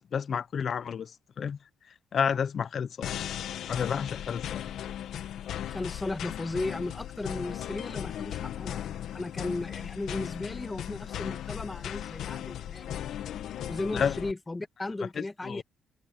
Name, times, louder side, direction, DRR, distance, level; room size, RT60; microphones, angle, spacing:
voice 1, 0.1-1.1 1.4-1.6 2.1-3.1 3.7-4.6 13.9-14.1 15.2-15.6, left 7 dB, 55° left, 1.0 m, -30 dB
sound 1, 3.0-14.3, left 10 dB, 75° left, 1.9 m, -37 dB
voice 2, 5.7-13.1 13.5-15.6, left 2 dB, 20° left, 2.4 m, -36 dB
cardioid pair, 90°, 0 cm